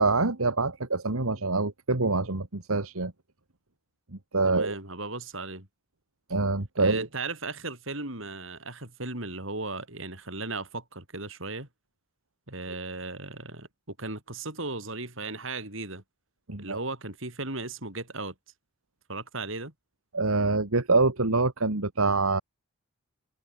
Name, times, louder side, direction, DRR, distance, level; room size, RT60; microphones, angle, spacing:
voice 1, 0.0-3.1 4.3-4.8 6.3-7.1 16.5-16.8 20.1-22.4, right 3 dB, 90° right, 2.0 m, -25 dB
voice 2, 4.4-5.7 6.8-11.7 12.5-16.0 16.6-18.3 19.1-19.7, right 3 dB, 65° right, 5.9 m, -36 dB
head